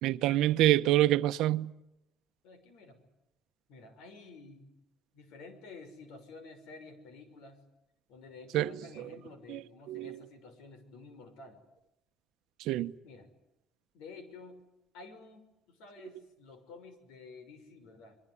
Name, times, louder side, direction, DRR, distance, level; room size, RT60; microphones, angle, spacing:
voice 1, 0.0-1.7 8.5-8.7 9.5-9.6 9.9-10.2 12.6-12.9, right 15 dB, 65° right, 1.0 m, -26 dB
voice 2, 2.4-3.0 3.7-4.7 5.1-7.6 8.1-11.6 13.0-13.3 13.9-14.6 14.9-18.2, left 3 dB, 75° left, 6.0 m, -51 dB
26.0 x 23.0 x 9.8 m
cardioid pair, 175°, 0 cm